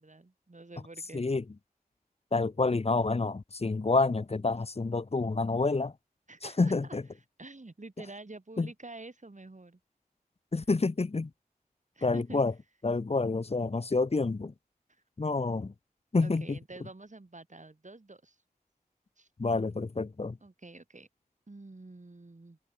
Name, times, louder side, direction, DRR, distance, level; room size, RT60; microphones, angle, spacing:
voice 1, 0.0-1.3 6.3-7.0 7.4-9.8 11.9-12.4 16.2-18.4 19.2-19.3 20.4-21.1 21.5-22.6, right 2 dB, 50° right, 4.6 m, -48 dB
voice 2, 1.1-1.4 2.3-5.9 6.4-7.0 8.6-8.7 10.5-11.3 12.0-12.5 12.8-14.5 15.2-15.7 16.1-16.6 19.4-20.4, left 3 dB, 40° left, 0.7 m, -28 dB
wide cardioid pair, 40°, 16 cm